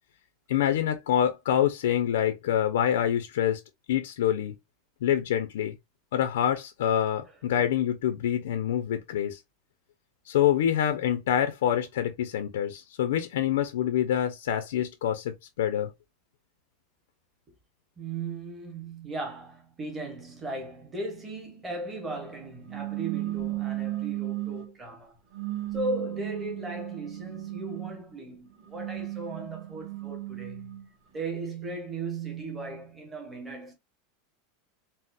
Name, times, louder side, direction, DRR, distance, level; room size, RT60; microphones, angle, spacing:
voice 1, 0.5-3.6 3.9-4.5 5.0-5.7 6.1-9.4 10.3-15.9, left 10 dB, 85° left, 0.5 m, -26 dB
voice 2, 18.0-25.2 25.7-30.8 31.1-33.7, right 2 dB, 10° right, 0.8 m, -37 dB
sound 1, 22.7-24.7 25.3-28.0 28.6-30.9, right 17 dB, 35° right, 1.0 m, -35 dB
4.0 x 2.0 x 2.3 m
supercardioid pair, 180°, 0 cm